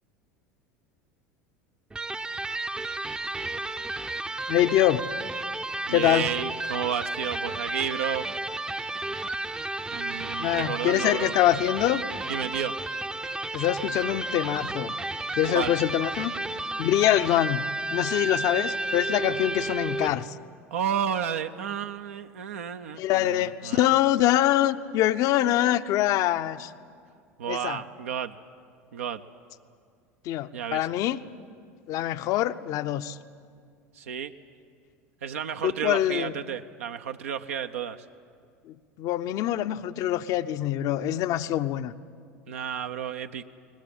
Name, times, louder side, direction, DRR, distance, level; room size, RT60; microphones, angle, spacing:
Electric guitar, 1.9-20.3, right 2 dB, 10° right, 0.7 m, -32 dB
voice 1, 4.5-5.0 5.9-6.3 10.4-12.0 13.5-14.9 15.4-16.3 16.8-17.6 17.9-20.3 23.0-26.7 27.5-27.8 30.2-31.2 31.9-33.2 35.6-36.3 38.7-41.9, left 13 dB, 45° left, 0.7 m, -24 dB
voice 2, 5.9-8.3 9.9-11.3 12.3-12.8 15.4-15.7 20.7-23.9 27.4-28.4 28.9-29.2 30.5-30.9 33.9-34.3 35.2-38.0 42.5-43.4, right 8 dB, 70° right, 0.7 m, -32 dB
22.0 x 20.0 x 8.6 m
figure-of-eight pair, 75°, 8 cm